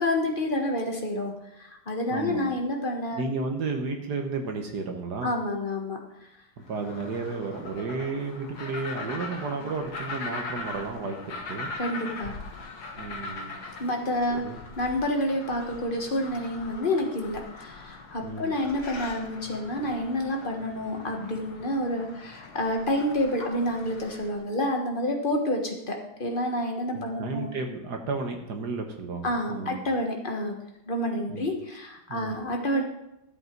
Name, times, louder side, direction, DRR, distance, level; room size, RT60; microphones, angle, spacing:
voice 1, 0.0-3.2 3.5-3.6 5.2-6.0 11.8-12.3 13.8-14.4 14.8-27.5 29.2-30.5 30.9-32.8, left 1 dB, 30° left, 1 dB, 1.2 m, -29 dB
voice 2, 2.1-2.5 3.1-5.3 6.7-11.7 13.0-13.5 14.3-14.6 18.2-18.6 26.9-29.8 31.3-31.5 32.1-32.4, right 4 dB, 55° right, 4 dB, 1.5 m, -33 dB
sound 1, 6.7-24.4, left 3 dB, 50° left, 1.9 m, -41 dB
12.0 x 8.0 x 4.6 m, 0.85 s
omnidirectional pair, 2.3 m